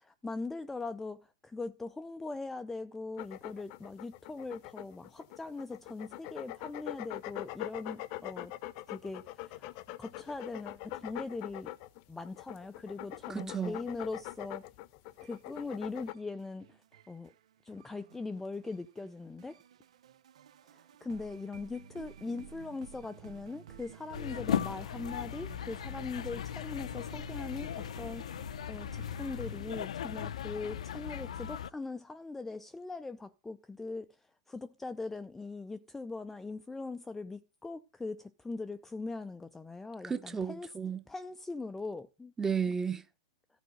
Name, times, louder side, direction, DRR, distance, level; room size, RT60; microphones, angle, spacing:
voice 1, 0.0-8.5 8.9-11.7 12.1-14.7 15.2-16.8 17.1-17.3 17.6-19.6 20.7-40.7 41.1-42.3, left 3 dB, 5° left, 0.5 m, -41 dB
sound 1, 3.2-16.1, left 16 dB, 45° left, 0.8 m, -43 dB
voice 2, 13.3-13.8 40.0-41.0 42.4-43.0, right 6 dB, 15° right, 1.1 m, -33 dB
sound 2, 15.1-29.6, right 8 dB, 70° right, 0.8 m, -53 dB
sound 3, 24.1-31.7, left 9 dB, 75° left, 0.7 m, -38 dB
14.0 x 5.0 x 7.8 m
hypercardioid pair, 120°, 4 cm